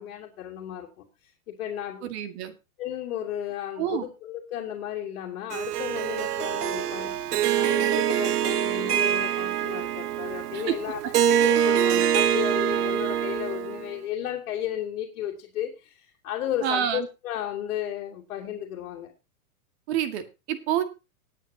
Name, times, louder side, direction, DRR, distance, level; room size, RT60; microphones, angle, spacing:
voice 1, 0.0-2.1 2.8-19.1, left 11 dB, 55° left, 2.9 m, -34 dB
voice 2, 2.0-2.5 3.8-4.0 10.5-10.8 16.6-17.1 19.9-20.8, right 10 dB, 45° right, 2.0 m, -28 dB
Harp, 5.5-13.9, right 10 dB, 90° right, 1.1 m, -25 dB
19.0 x 9.1 x 2.9 m
hypercardioid pair, 155°, 45 cm